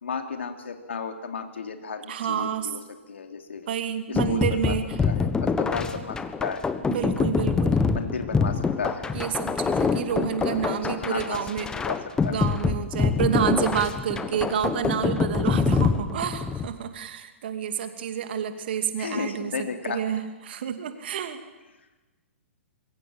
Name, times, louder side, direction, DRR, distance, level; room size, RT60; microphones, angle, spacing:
voice 1, 0.0-2.8 3.1-3.7 4.1-4.7 5.0-6.1 6.4-6.7 7.9-9.1 10.4-11.5 11.7-12.0 12.2-12.4 15.5-15.6 19.0-20.0, left 5 dB, 65° left, 5 dB, 3.1 m, -33 dB
voice 2, 2.1-2.7 3.7-5.0 6.9-7.8 9.1-11.7 12.3-21.4, right 8 dB, 50° right, 8 dB, 2.6 m, -29 dB
sound 1, 4.2-16.7, left 5 dB, 10° left, 1.4 m, -25 dB
26.0 x 22.5 x 7.8 m, 1.2 s
figure-of-eight pair, 115°, 7 cm